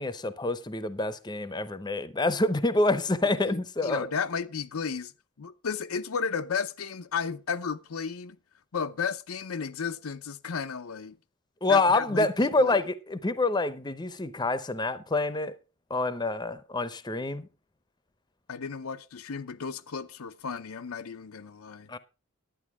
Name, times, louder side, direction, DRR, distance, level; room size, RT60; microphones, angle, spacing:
voice 1, 0.0-4.1 11.6-15.5 15.9-17.5 21.9-22.0, left 2 dB, 20° left, 0.7 m, -27 dB
voice 2, 3.4-5.1 5.4-8.4 8.7-11.1 11.7-12.8 18.5-21.9, left 6 dB, 85° left, 0.7 m, -33 dB
11.0 x 9.2 x 4.7 m
head